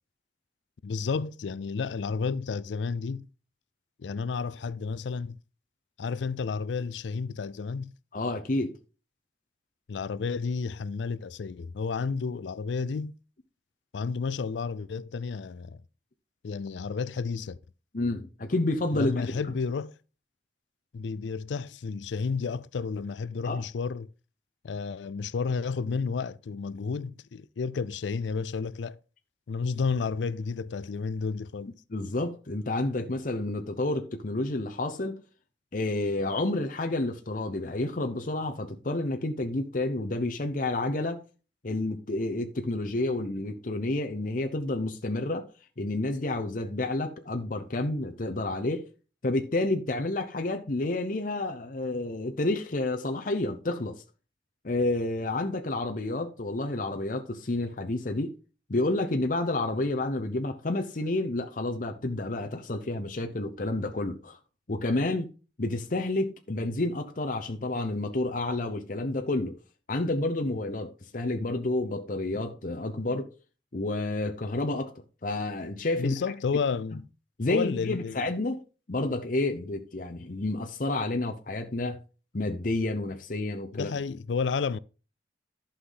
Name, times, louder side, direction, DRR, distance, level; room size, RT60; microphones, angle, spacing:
voice 1, 0.8-3.3 4.0-5.4 6.0-7.9 9.9-13.2 13.9-15.8 16.4-17.6 18.9-19.9 20.9-24.1 24.6-29.0 29.5-31.7 76.0-77.1 77.5-78.2 83.7-84.8, left 5 dB, 85° left, 0.4 m, -31 dB
voice 2, 8.1-8.7 17.9-19.3 23.4-23.6 31.9-35.2 35.7-41.2 41.6-45.4 45.8-48.9 49.2-54.0 54.6-58.3 58.7-64.4 64.7-65.3 65.6-69.6 69.9-73.3 73.7-74.9 75.2-76.1 77.4-78.6 78.9-82.0 82.3-83.9, left 2 dB, 50° left, 0.8 m, -30 dB
11.5 x 5.8 x 3.9 m
head